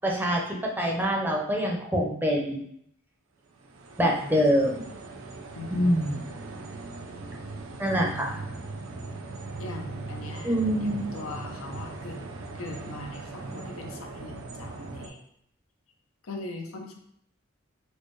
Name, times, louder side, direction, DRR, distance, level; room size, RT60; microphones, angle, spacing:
voice 1, 0.0-2.6 4.0-4.9 5.7-6.2 7.8-8.3 10.4-11.1, equal, 10° right, -1 dB, 0.5 m, -25 dB
sound 1, 3.5-15.1, right 3 dB, 70° right, 0.5 m, -39 dB
voice 2, 5.6-6.0 7.9-8.4 9.6-12.2 12.5-15.2 16.2-16.9, left 2 dB, 85° left, 2 dB, 0.6 m, -40 dB
4.4 x 2.1 x 3.1 m, 0.70 s
head